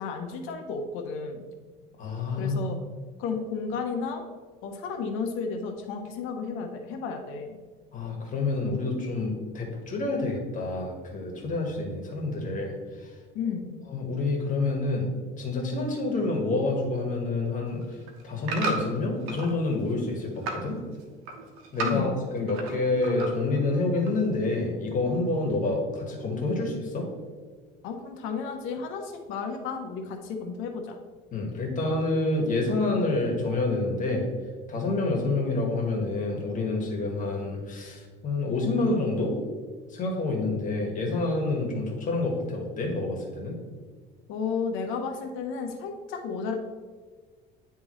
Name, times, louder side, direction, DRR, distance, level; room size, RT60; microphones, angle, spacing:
voice 1, 0.0-1.4 2.4-2.8 3.2-4.2 4.6-7.5 13.3-13.7 21.8-22.1 27.8-31.0 44.3-46.5, left 5 dB, 75° left, 3 dB, 1.0 m, -32 dB
voice 2, 2.0-2.6 7.9-13.1 13.9-15.1 15.4-18.0 18.2-20.8 21.7-27.0 31.3-34.2 34.7-39.3 39.9-43.6, left 2 dB, 40° left, 0 dB, 1.7 m, -28 dB
sound 1, 17.7-19.5 19.9-20.7 21.0-22.8 23.0-23.6 24.1-24.2, right 3 dB, 90° right, 1.1 m, -34 dB
10.0 x 3.5 x 3.1 m, 1.5 s
cardioid pair, 120°, 21 cm